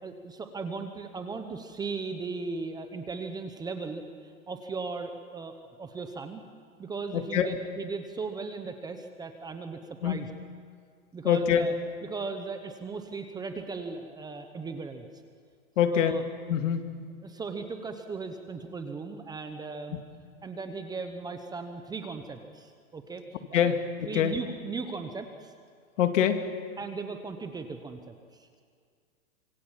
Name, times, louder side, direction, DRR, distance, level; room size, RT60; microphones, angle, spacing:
voice 1, 0.0-6.4 6.8-10.3 11.1-11.7 12.0-15.1 15.8-16.2 17.2-20.0 20.4-23.2 23.5-23.8 24.0-25.5 26.8-28.6, right 4 dB, 10° right, 7 dB, 1.1 m, -37 dB
voice 2, 7.1-7.6 10.0-10.2 11.2-11.7 15.8-16.1 16.5-16.8 19.9-20.0 23.5-23.7 24.1-24.3 26.0-26.5, left 9 dB, 60° left, 7 dB, 2.2 m, -24 dB
26.0 x 23.0 x 7.5 m, 2.1 s
hypercardioid pair, 150°, 42 cm